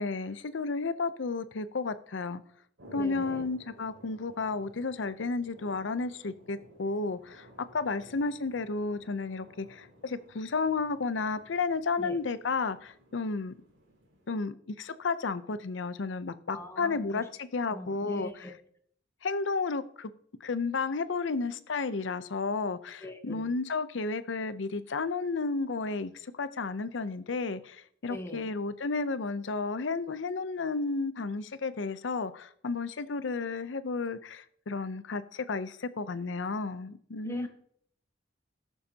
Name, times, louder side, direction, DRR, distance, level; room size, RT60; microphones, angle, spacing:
voice 1, 0.0-2.4 2.9-7.5 7.7-13.5 14.3-18.3 19.2-20.1 20.4-37.5, left 4 dB, 75° left, 14 dB, 0.6 m, -32 dB
sound 1, 2.8-14.3, equal, 85° right, 3.3 m, -54 dB
voice 2, 2.9-3.5 12.0-12.2 16.5-17.3 17.7-18.5 23.0-23.5 28.1-28.5 37.2-37.5, equal, 15° left, 4 dB, 1.1 m, -42 dB
18.5 x 7.0 x 2.8 m, 0.62 s
head